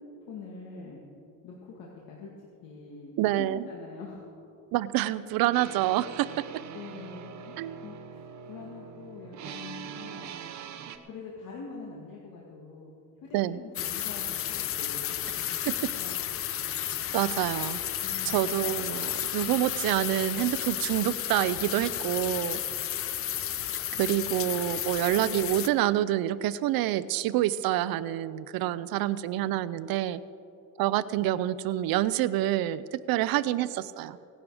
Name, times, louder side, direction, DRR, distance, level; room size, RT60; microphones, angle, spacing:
voice 1, 0.3-1.0 1.4-2.3 2.6-4.3 6.7-8.2 8.5-10.2 11.1-12.9 13.2-15.5 15.9-16.2 18.0-18.4 22.5-22.9 23.9-24.0, left 4 dB, 75° left, -3 dB, 2.1 m, -44 dB
voice 2, 3.2-3.7 4.7-6.4 7.6-7.8 13.3-13.6 15.7-15.8 17.1-17.8 18.2-22.6 24.0-30.2 30.8-34.2, right 14 dB, 90° right, 16 dB, 0.6 m, -27 dB
sound 1, 5.5-11.0, right 8 dB, 55° right, 0.9 m, -43 dB
sound 2, 13.7-25.7, left 11 dB, 40° left, 0.5 m, -32 dB
17.5 x 11.0 x 4.9 m, 2.6 s
cardioid pair, 155°, 34 cm